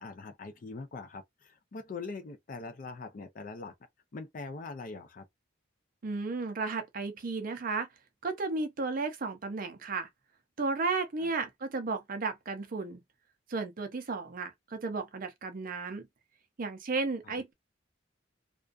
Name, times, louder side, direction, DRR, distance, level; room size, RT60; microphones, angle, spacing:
voice 1, 0.0-3.8 4.1-5.3 11.2-11.3 17.2-17.4, left 3 dB, 45° left, 0.4 m, -42 dB
voice 2, 6.0-7.9 8.2-10.1 10.6-13.0 13.5-16.0 16.6-17.5, right 3 dB, 45° right, 0.5 m, -34 dB
2.4 x 2.2 x 2.3 m
head